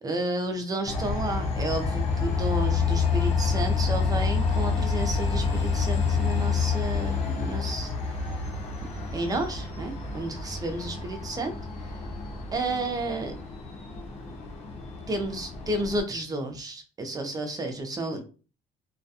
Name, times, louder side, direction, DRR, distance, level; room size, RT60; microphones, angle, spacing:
voice 1, 0.0-7.9 9.1-11.5 12.5-13.4 15.1-18.2, right 2 dB, 20° right, 5 dB, 0.6 m, -31 dB
Train, 0.9-16.0, left 5 dB, 40° left, 1.0 m, -28 dB
2.3 x 2.2 x 2.7 m, 0.34 s
cardioid pair, 110°, 17 cm